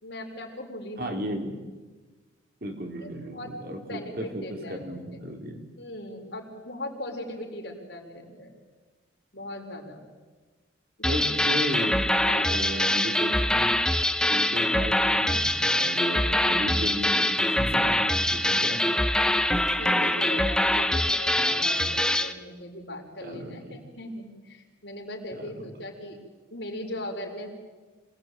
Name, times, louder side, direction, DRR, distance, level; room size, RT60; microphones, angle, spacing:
voice 1, 0.0-1.3 3.0-3.6 3.9-4.8 5.8-8.6 9.3-10.0 11.1-11.4 11.7-11.8 12.2-12.9 18.7-19.0 19.3-26.2 26.5-27.5, left 1 dB, 65° left, 1 dB, 4.6 m, -39 dB
voice 2, 1.0-1.6 2.6-4.4 4.7-5.6 11.0-12.0 12.3-13.7 14.2-18.8 19.5-20.3 21.4-21.8 23.2-23.8 25.3-25.8, equal, 50° right, 4 dB, 3.3 m, -35 dB
sound 1, 11.0-22.3, left 1 dB, 5° left, 0.8 m, -24 dB
26.5 x 18.5 x 9.0 m, 1.3 s
head